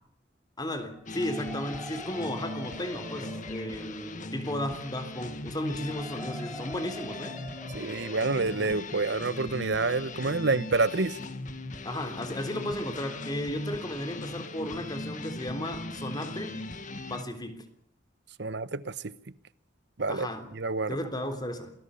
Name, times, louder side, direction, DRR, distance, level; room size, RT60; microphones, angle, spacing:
voice 1, 0.6-7.4 11.8-16.6 17.1-17.7 20.1-20.5 20.9-21.7, left 1 dB, 20° left, 3.5 m, -34 dB
sound 1, 0.9-10.8, right 1 dB, 5° right, 3.8 m, -47 dB
sound 2, 1.1-17.2, left 2 dB, 45° left, 1.9 m, -39 dB
voice 2, 7.7-11.2 18.4-19.1 20.0-20.3 20.5-21.0, right 3 dB, 65° right, 1.1 m, -28 dB
28.0 x 19.0 x 7.1 m
head